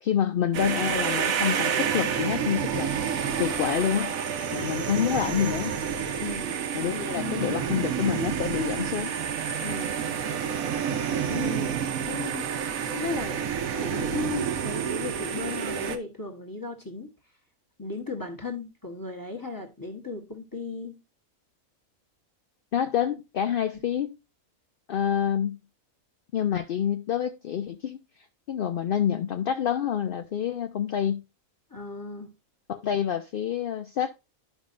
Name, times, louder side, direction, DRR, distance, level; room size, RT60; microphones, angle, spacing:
voice 1, 0.0-2.9 3.4-4.2 4.5-5.7 6.7-9.1 22.7-24.2 24.9-25.6 26.3-28.0 28.5-31.2 32.7-34.1, left 9 dB, 70° left, 0.5 m, -27 dB
sound 1, 0.5-16.0, right 8 dB, 80° right, 1.3 m, -29 dB
voice 2, 6.2-6.6 6.9-7.9 9.6-9.9 11.3-12.5 12.9-13.4 13.8-17.1 17.8-21.0 31.7-32.3, left 3 dB, 15° left, 1.2 m, -36 dB
12.5 x 5.2 x 2.5 m
omnidirectional pair, 1.4 m